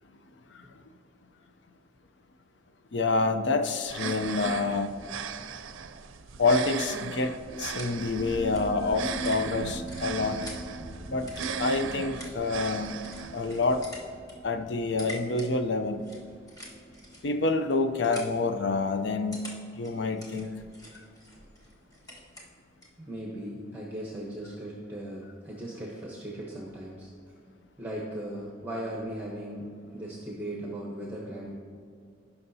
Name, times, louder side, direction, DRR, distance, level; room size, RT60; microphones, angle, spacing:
voice 1, 2.9-4.9 6.4-10.5 11.1-11.3 11.6-13.0 13.3-13.8 14.4-16.1 17.2-19.5 19.8-20.5, left 3 dB, 60° left, 8 dB, 0.5 m, -27 dB
sound 1, 3.8-13.8, right 6 dB, 85° right, 0.5 m, -37 dB
sound 2, 7.4-18.5, right 1 dB, 80° left, 2.0 m, -42 dB
sound 3, 7.5-23.0, equal, 20° left, 1.4 m, -49 dB
voice 2, 23.0-27.1 27.8-31.6, right 1 dB, 10° right, -3 dB, 1.0 m, -38 dB
16.5 x 5.7 x 2.7 m, 2.3 s
head